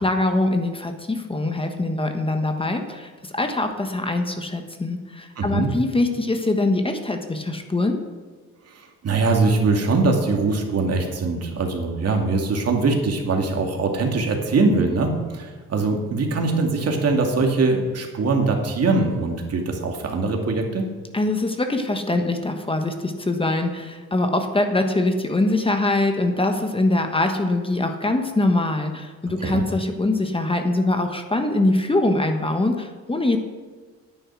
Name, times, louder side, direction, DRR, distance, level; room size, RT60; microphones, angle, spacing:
voice 1, 0.0-8.0 21.1-33.4, left 2 dB, 20° left, 5 dB, 1.3 m, -23 dB
voice 2, 5.4-5.7 8.7-20.9 29.4-29.6, right 3 dB, 55° right, 2 dB, 2.3 m, -22 dB
10.0 x 9.1 x 6.2 m, 1.5 s
cardioid pair, 90°, 30 cm